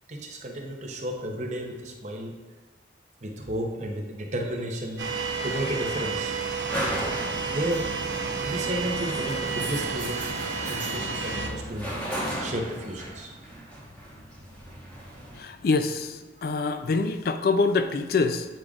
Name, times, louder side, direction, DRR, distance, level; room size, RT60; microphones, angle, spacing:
voice 1, 0.1-2.3 3.2-6.4 7.1-7.9 8.4-12.0 12.4-13.3, right 1 dB, 40° right, 1 dB, 0.8 m, -33 dB
sound 1, 4.9-15.4, equal, 10° left, 1.2 m, -36 dB
sound 2, 5.0-11.5, right 5 dB, 75° right, 0.8 m, -31 dB
voice 2, 15.4-16.1 16.4-18.5, left 4 dB, 55° left, 9 dB, 0.3 m, -25 dB
8.7 x 5.0 x 2.4 m, 1.2 s
head